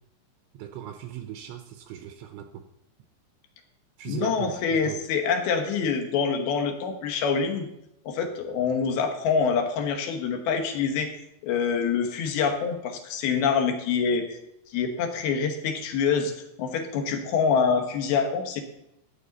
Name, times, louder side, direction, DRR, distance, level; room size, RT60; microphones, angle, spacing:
voice 1, 0.5-2.7 4.0-5.1, right 11 dB, 80° right, 2.8 m, -38 dB
voice 2, 4.1-7.7 8.1-11.1 11.4-14.4 14.7-16.3 16.6-18.6, left 6 dB, 70° left, 2.5 m, -25 dB
14.0 x 9.1 x 4.0 m
omnidirectional pair, 5.6 m